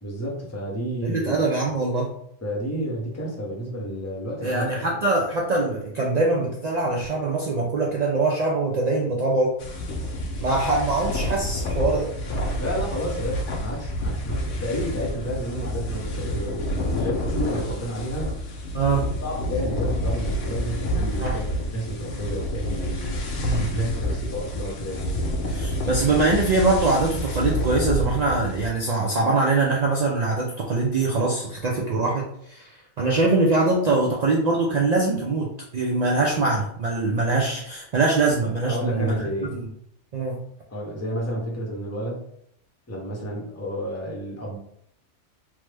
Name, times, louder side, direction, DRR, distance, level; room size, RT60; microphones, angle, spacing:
voice 1, 0.0-1.4 2.4-4.9 12.6-18.5 19.2-23.2 23.7-25.2 38.7-39.6 40.7-42.3 42.9-44.6, equal, 15° left, -2 dB, 0.5 m, -31 dB
voice 2, 1.0-2.2 4.4-9.6 10.4-12.1 14.3-14.5 18.7-19.1 21.2-21.4 23.4-23.9 25.4-35.5 35.7-39.1 39.5-39.6 40.1-40.4, right 3 dB, 85° right, -2 dB, 0.3 m, -23 dB
sound 1, 9.6-28.7, equal, 85° left, 1.0 m, -28 dB
3.1 x 2.1 x 3.2 m, 0.69 s
omnidirectional pair, 1.3 m